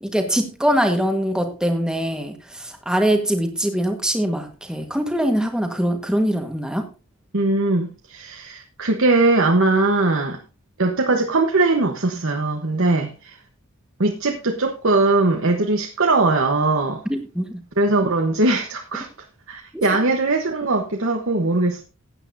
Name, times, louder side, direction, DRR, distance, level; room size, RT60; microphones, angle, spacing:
voice 1, 0.0-6.9 17.1-17.6 19.7-19.8, equal, 5° right, 1.4 m, -23 dB
voice 2, 7.3-10.4 10.8-13.4 14.0-17.0 17.8-19.1 19.5-21.8, right 2 dB, 65° right, 1.1 m, -20 dB
16.0 x 9.1 x 2.6 m
head